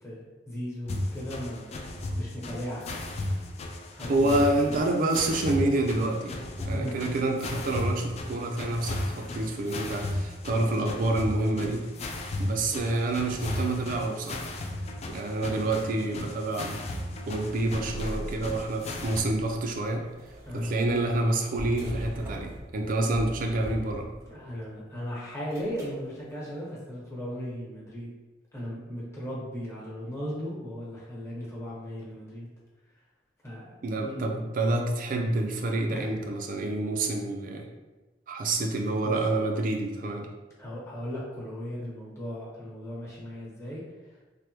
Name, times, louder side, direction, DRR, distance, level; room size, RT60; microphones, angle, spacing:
voice 1, 0.0-1.8 2.1-3.0 4.0-4.8 6.7-6.9 20.4-20.7 24.3-28.1 28.5-32.5 33.4-33.7 34.0-34.4 35.9-36.2 39.0-39.1 40.6-44.2, equal, 15° left, -7 dB, 1.0 m, -37 dB
sound 1, 0.9-19.2, left 1 dB, 35° left, 0.3 m, -35 dB
voice 2, 4.1-11.9 12.4-14.5 15.1-16.9 17.3-20.0 20.5-24.1 33.8-37.7 38.3-40.3, right 2 dB, 50° right, 3 dB, 0.4 m, -28 dB
sound 2, 17.4-24.5 25.5-26.0, equal, 20° right, 0.7 m, -41 dB
3.3 x 2.2 x 3.0 m, 1.1 s
head